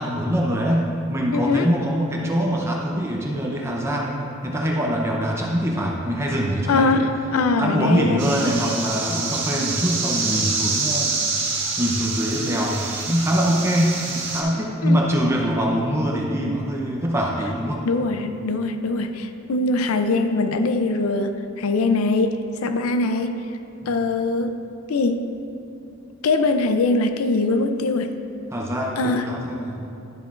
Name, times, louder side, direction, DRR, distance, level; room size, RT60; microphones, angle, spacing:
voice 1, 0.0-7.0 7.6-11.5 11.8-17.8 23.8-23.9 28.5-29.9, equal, 15° right, -2 dB, 0.6 m, -23 dB
voice 2, 1.3-1.7 6.7-8.3 14.8-15.0 17.9-23.4 23.9-24.6 24.9-25.3 26.2-28.1 29.0-29.3, left 3 dB, 90° left, 8 dB, 0.5 m, -22 dB
sound 1, 8.2-14.4, right 4 dB, 60° right, 1.5 m, -26 dB
12.0 x 7.3 x 2.4 m, 2.7 s
head